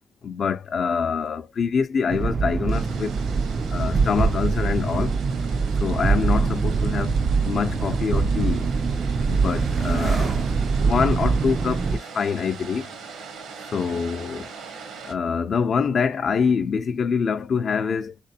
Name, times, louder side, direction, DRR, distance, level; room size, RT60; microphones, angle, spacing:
voice 1, 0.2-3.1 3.7-5.2 5.8-7.2 7.4-8.7 9.3-12.9 13.7-14.5 15.1-18.2, left 6 dB, 50° left, 0.5 m, -25 dB
sound 1, 2.1-12.0, right 4 dB, 40° right, 0.3 m, -23 dB
sound 2, 2.7-15.1, right 5 dB, 80° right, 0.9 m, -41 dB
3.3 x 3.1 x 2.7 m
cardioid pair, 90°, 0 cm